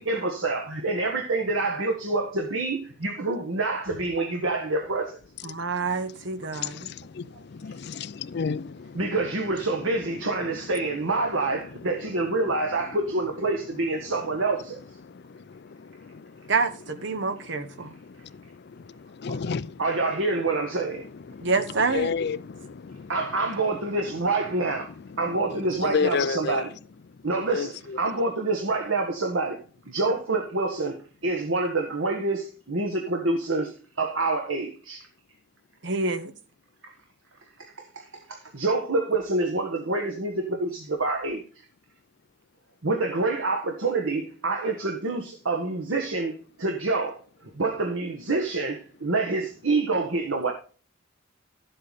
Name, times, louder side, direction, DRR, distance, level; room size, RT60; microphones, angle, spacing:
voice 1, 0.0-5.2 8.9-14.8 19.3-19.4 19.8-21.0 23.1-24.9 25.2-26.7 27.2-27.7 28.0-29.6 29.9-30.9 31.2-33.7 34.0-35.0 37.6-37.7 38.3-41.4 42.8-46.3 46.6-47.2 47.6-50.5, right 3 dB, 85° right, 1.4 m, -27 dB
voice 2, 5.4-6.9 16.5-17.9 21.4-22.1 35.8-36.3, right 4 dB, 65° right, 1.0 m, -27 dB
voice 3, 6.5-12.9 14.0-20.0 20.9-26.8 27.1-28.0, left 5 dB, 55° left, 0.4 m, -35 dB
11.5 x 7.9 x 4.1 m
head